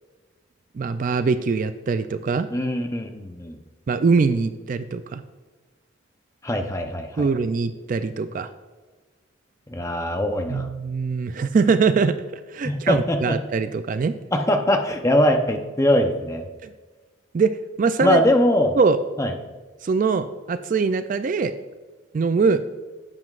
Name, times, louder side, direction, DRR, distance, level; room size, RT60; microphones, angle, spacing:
voice 1, 0.7-2.5 3.9-5.2 7.2-8.5 10.5-14.2 16.6-16.7 17.3-18.2 18.8-19.0 19.8-21.5 22.1-22.6, right 4 dB, 40° right, 11 dB, 0.3 m, -22 dB
voice 2, 2.5-3.6 6.4-7.3 9.7-10.7 12.6-13.4 14.3-16.4 18.0-18.8 19.2-19.3, left 1 dB, 15° left, 5 dB, 0.6 m, -22 dB
10.5 x 7.7 x 2.4 m, 1.3 s
head